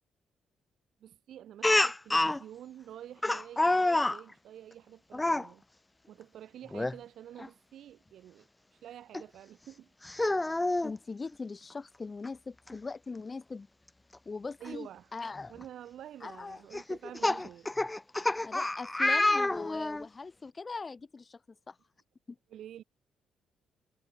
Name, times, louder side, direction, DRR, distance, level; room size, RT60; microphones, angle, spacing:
voice 1, 1.0-5.6 6.1-8.5 8.8-10.2 14.6-15.1 15.5-17.7 22.5-22.8, right 11 dB, 70° right, 6.6 m, -48 dB
Speech, 1.6-2.4 3.2-4.2 5.1-5.5 6.7-7.0 7.4-7.5 9.1-9.2 10.0-10.9 12.3-12.4 12.7-12.8 14.7-14.8 15.4-15.6 16.7-20.1, left 2 dB, 15° left, 0.5 m, -28 dB
voice 2, 10.8-13.7 14.2-15.5 16.2-16.6 18.4-21.4 21.7-21.8 22.3-22.4, left 4 dB, 30° left, 1.3 m, -41 dB
cardioid pair, 90°, 0 cm